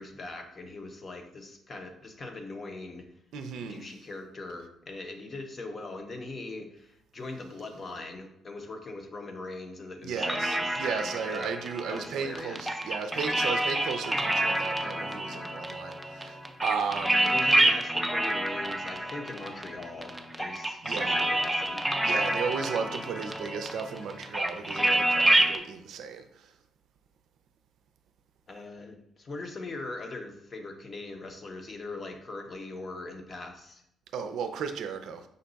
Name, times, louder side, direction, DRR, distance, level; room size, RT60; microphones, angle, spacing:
voice 1, 0.0-3.1 3.6-11.5 11.9-12.6 17.2-21.8 28.5-33.8, left 2 dB, 40° left, 0.7 m, -41 dB
voice 2, 3.3-3.8 10.0-17.4 20.8-21.3 22.0-26.5 34.1-35.2, right 6 dB, 75° right, 0.4 m, -35 dB
sound 1, 10.2-25.6, right 1 dB, 5° right, 0.5 m, -28 dB
5.2 x 2.3 x 3.9 m
cardioid pair, 90°, 0 cm